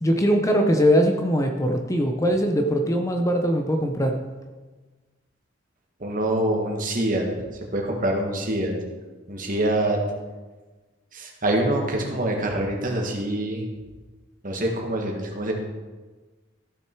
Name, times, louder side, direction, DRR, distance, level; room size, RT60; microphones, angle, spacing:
voice 1, 0.0-4.2, equal, 15° left, 4 dB, 0.6 m, -21 dB
voice 2, 6.0-7.3 7.7-8.7 9.3-10.0 11.1-13.6 14.4-15.5, right 1 dB, 45° right, 1 dB, 1.8 m, -25 dB
14.0 x 6.4 x 4.6 m, 1.3 s
head